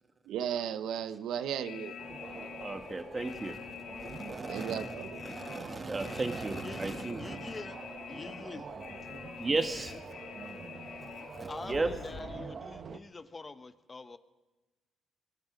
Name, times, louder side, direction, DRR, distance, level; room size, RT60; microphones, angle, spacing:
voice 1, 0.3-1.9 2.3-2.5 4.5-5.2, right 9 dB, 80° right, 11 dB, 0.7 m, -35 dB
sound 1, 1.6-12.5, left 7 dB, 70° left, 1.8 m, -45 dB
sound 2, 2.0-13.0, right 5 dB, 45° right, 0.8 m, -46 dB
voice 2, 2.6-7.6 9.4-10.0 11.0-11.9, right 3 dB, 25° right, 7 dB, 1.6 m, -35 dB
voice 3, 6.6-7.8 8.1-8.7 11.5-14.2, left 3 dB, 30° left, 12 dB, 0.8 m, -45 dB
23.5 x 12.0 x 5.2 m, 1.2 s
cardioid pair, 90°, 0 cm